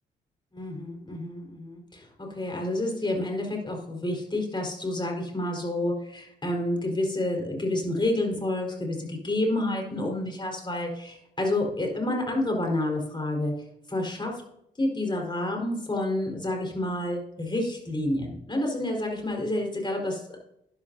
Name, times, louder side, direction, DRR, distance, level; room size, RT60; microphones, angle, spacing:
voice 1, 0.5-13.5 13.9-14.4 14.8-20.4, left 1 dB, 25° left, 1 dB, 4.4 m, -29 dB
11.5 x 11.0 x 2.7 m, 0.77 s
supercardioid pair, 60°, 19 cm